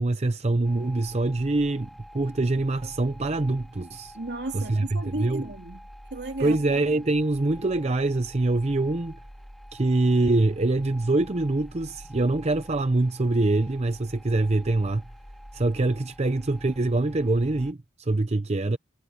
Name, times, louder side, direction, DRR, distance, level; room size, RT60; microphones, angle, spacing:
voice 1, 0.0-1.9 2.1-4.2 4.5-5.4 6.4-9.2 9.7-15.0 15.5-18.8, right 2 dB, 35° right, 0.7 m, -24 dB
sound 1, 0.6-17.7, equal, ahead, 2.3 m, -47 dB
voice 2, 4.1-5.8 6.1-6.6, right 2 dB, 65° right, 2.4 m, -34 dB
head